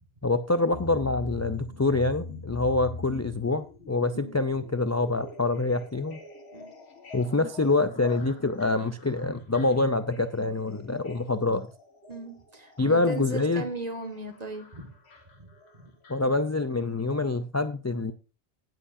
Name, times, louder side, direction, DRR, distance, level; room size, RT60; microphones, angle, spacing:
voice 1, 0.2-6.2 7.1-11.7 12.8-13.6 16.1-18.1, left 3 dB, 25° left, 10 dB, 0.3 m, -26 dB
sound 1, 0.7-16.8 17.1-17.2, left 2 dB, 85° left, 1.8 m, -44 dB
voice 2, 12.1-14.9 15.4-15.5 15.8-15.9, right 2 dB, 40° right, 5 dB, 1.8 m, -37 dB
16.5 x 7.7 x 2.6 m, 0.34 s
omnidirectional pair, 1.1 m